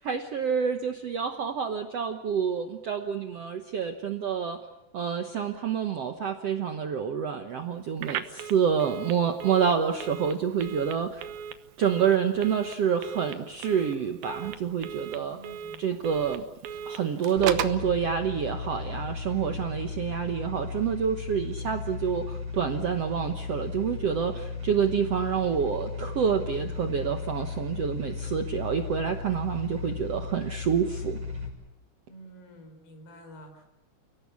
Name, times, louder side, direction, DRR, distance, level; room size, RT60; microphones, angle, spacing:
voice 1, 0.0-4.6 4.9-11.2 11.8-15.4 15.8-16.4 16.9-31.2, right 7 dB, 90° right, 6 dB, 1.3 m, -28 dB
Telephone, 8.0-17.9, right 9 dB, 70° right, 2.7 m, -37 dB
voice 2, 15.1-15.8 32.1-33.7, right 1 dB, 65° left, 6 dB, 6.3 m, -49 dB
sound 1, 17.4-31.5, left 5 dB, 30° right, 6.8 m, -36 dB
30.0 x 18.0 x 8.5 m, 0.94 s
omnidirectional pair, 4.7 m